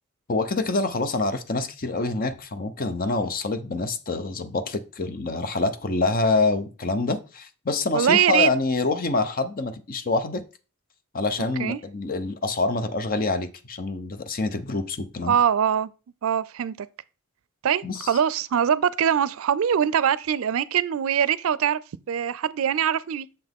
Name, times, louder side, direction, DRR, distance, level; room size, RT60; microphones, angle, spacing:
voice 1, 0.3-10.4 11.1-15.4 17.8-18.2, left 3 dB, 45° left, 0.7 m, -26 dB
voice 2, 7.9-8.5 11.6-11.8 15.3-15.9 16.2-16.9 17.6-21.8 22.1-23.3, right 8 dB, 80° right, 0.4 m, -22 dB
6.8 x 5.9 x 3.5 m
head